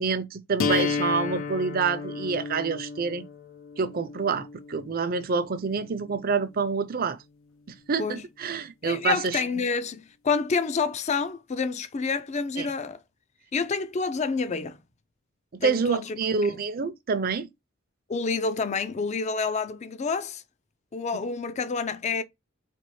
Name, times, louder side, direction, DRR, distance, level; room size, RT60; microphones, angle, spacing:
voice 1, 0.0-3.2 3.8-7.2 7.7-9.4 12.6-12.7 15.5-17.5 21.1-21.2, right 5 dB, 50° right, 0.5 m, -27 dB
sound 1, 0.6-6.6, left 5 dB, 85° left, 0.6 m, -33 dB
voice 2, 8.8-13.0 13.5-14.8 15.6-16.2 16.5-16.6 18.1-20.4 20.9-22.2, left 4 dB, 35° left, 0.4 m, -28 dB
4.3 x 2.9 x 3.1 m
head